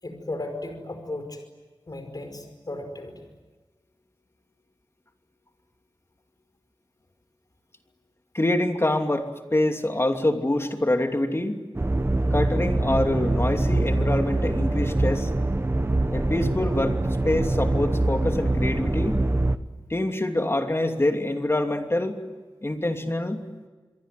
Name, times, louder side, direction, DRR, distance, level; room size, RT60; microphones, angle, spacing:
voice 1, 0.0-1.4 1.9-3.2, left 2 dB, 50° left, 6 dB, 5.3 m, -35 dB
voice 2, 8.3-11.6 12.3-15.3 16.1-17.0 17.2-19.2 19.9-22.2 22.6-23.4, left 1 dB, 30° left, 5 dB, 2.8 m, -25 dB
sound 1, 11.7-19.6, right 2 dB, 30° right, 1.1 m, -24 dB
27.5 x 23.0 x 9.4 m, 1.3 s
wide cardioid pair, 85°, 9 cm